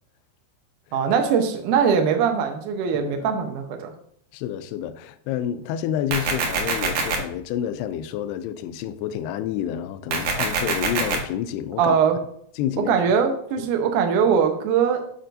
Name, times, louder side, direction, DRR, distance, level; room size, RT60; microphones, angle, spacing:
voice 1, 0.9-3.9 11.8-12.2 12.9-15.1, right 6 dB, 90° right, 1.8 m, -21 dB
voice 2, 2.9-3.3 4.3-12.0 12.6-12.9 13.6-13.7, left 10 dB, 85° left, 2.5 m, -29 dB
sound 1, 6.1-7.2 10.1-11.2, right 4 dB, 65° right, 1.9 m, -24 dB
11.5 x 4.5 x 2.6 m
omnidirectional pair, 4.8 m